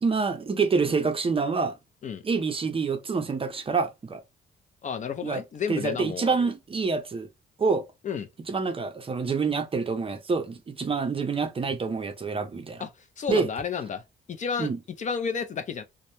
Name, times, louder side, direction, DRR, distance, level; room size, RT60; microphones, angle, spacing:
voice 1, 0.0-1.8 2.2-4.2 5.2-5.4 5.7-7.3 7.6-7.8 8.5-12.9 13.3-13.5 14.6-14.8, right 4 dB, 30° right, 0.5 m, -27 dB
voice 2, 4.8-6.5 8.0-8.3 12.8-12.9 13.2-14.0 14.3-14.7 15.0-15.8, left 6 dB, 40° left, 0.4 m, -31 dB
2.1 x 2.0 x 2.8 m
cardioid pair, 90°, 20 cm